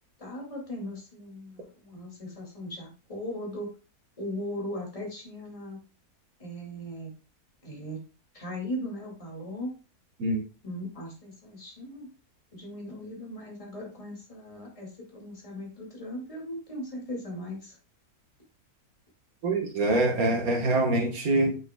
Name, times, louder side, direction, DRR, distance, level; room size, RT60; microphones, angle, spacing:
voice 1, 0.2-3.7 4.2-5.8 6.4-7.1 7.6-8.0 8.3-9.7 10.6-12.1 12.5-17.8, left 1 dB, 20° left, 2.3 m, -38 dB
voice 2, 19.4-21.6, right 2 dB, 65° right, 1.8 m, -24 dB
8.5 x 5.8 x 2.2 m
omnidirectional pair, 1.7 m